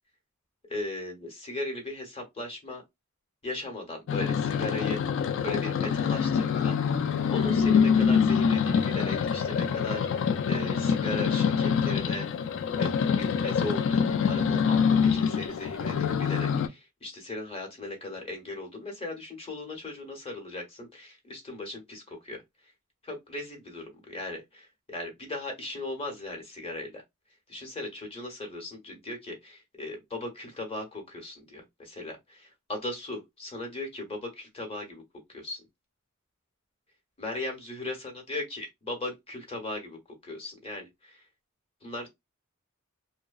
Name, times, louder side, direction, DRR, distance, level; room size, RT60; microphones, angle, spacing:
voice 1, 0.7-2.8 3.4-7.0 7.3-12.3 12.7-22.7 23.0-27.0 27.5-35.0 35.3-35.6 37.2-41.3 41.8-42.1, left 2 dB, 30° left, 0.8 m, -38 dB
sound 1, 4.1-16.7, left 6 dB, 60° left, 0.3 m, -25 dB
2.7 x 2.1 x 2.3 m
head